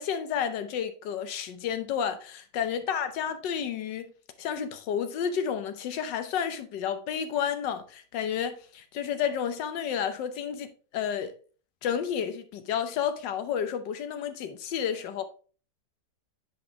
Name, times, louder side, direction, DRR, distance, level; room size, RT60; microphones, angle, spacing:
voice 1, 0.0-4.1 4.4-11.3 11.8-15.2, left 8 dB, 80° left, 1.5 m, -31 dB
7.9 x 4.9 x 3.4 m
omnidirectional pair, 1.9 m